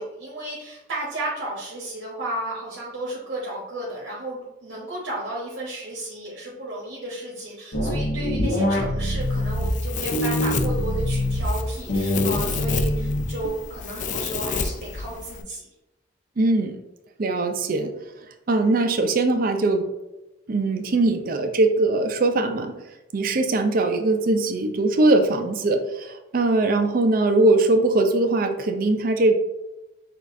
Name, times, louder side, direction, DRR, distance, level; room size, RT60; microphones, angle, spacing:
voice 1, 0.0-15.7, right 1 dB, 80° right, -6 dB, 1.0 m, -33 dB
sound 1, 7.7-9.7 10.1-11.5 11.9-13.5, left 1 dB, 60° left, 0.9 m, -24 dB
Domestic sounds home sounds, 9.2-15.4, left 5 dB, 40° left, 0.3 m, -31 dB
voice 2, 16.4-16.8 17.2-17.9 18.5-19.9 20.5-22.7 23.1-29.3, right 2 dB, 50° right, 6 dB, 0.5 m, -21 dB
6.1 x 2.4 x 2.6 m, 0.97 s
head